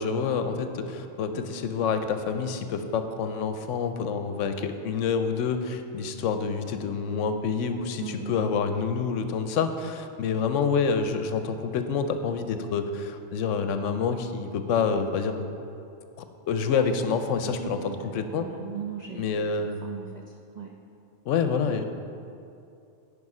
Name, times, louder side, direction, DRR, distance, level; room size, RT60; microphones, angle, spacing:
voice 1, 0.0-15.4 16.2-18.5 19.1-19.8 21.3-21.8, left 5 dB, 75° left, 8 dB, 0.9 m, -27 dB
voice 2, 8.0-8.5 17.4-19.3 19.6-20.1 20.6-20.7, right 7 dB, 65° right, 2 dB, 0.4 m, -38 dB
9.5 x 5.2 x 4.9 m, 2.6 s
omnidirectional pair, 1.3 m